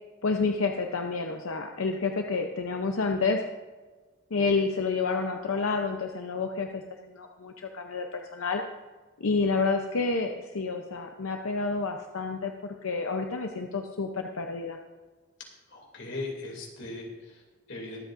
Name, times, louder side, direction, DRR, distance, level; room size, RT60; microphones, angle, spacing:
voice 1, 0.2-3.4 4.3-6.8 7.1-8.6 9.2-14.8, left 4 dB, 85° left, 4 dB, 0.7 m, -29 dB
voice 2, 15.7-18.0, left 2 dB, 60° left, 0 dB, 2.8 m, -39 dB
22.5 x 8.1 x 2.6 m, 1.4 s
head